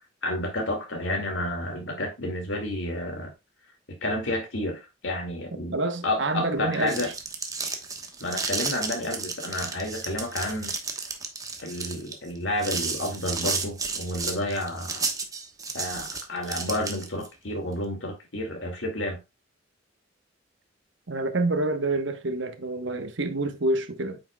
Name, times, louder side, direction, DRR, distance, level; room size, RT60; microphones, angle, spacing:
voice 1, 0.2-3.3 3.9-5.8 6.0-7.1 8.2-10.8 11.6-15.0 15.7-19.2, left 1 dB, 70° left, 2.2 m, -30 dB
voice 2, 5.7-7.1 21.1-24.2, right 2 dB, 65° right, 1.1 m, -27 dB
sound 1, 6.6-17.3, right 4 dB, 20° right, 1.1 m, -32 dB
8.7 x 6.1 x 2.3 m
head